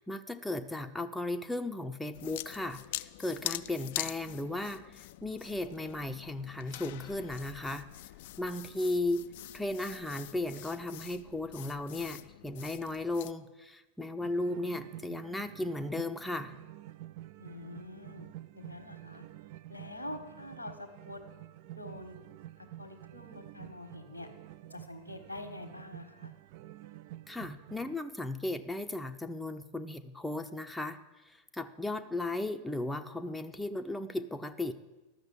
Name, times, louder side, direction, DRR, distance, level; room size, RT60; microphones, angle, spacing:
voice 1, 0.0-7.9 8.4-16.5 27.3-31.0 31.2-34.7, left 2 dB, 5° left, 6 dB, 0.6 m, -36 dB
sound 1, 2.1-13.3, left 15 dB, 50° left, 0.3 m, -44 dB
sound 2, 14.2-28.0, right 14 dB, 50° right, 0.3 m, -49 dB
voice 2, 17.4-19.2 19.7-21.2 21.7-22.2 22.8-24.3 24.7-26.3, left 1 dB, 90° left, 7 dB, 1.3 m, -45 dB
12.5 x 6.5 x 8.2 m, 1.1 s
figure-of-eight pair, 90°, 0 cm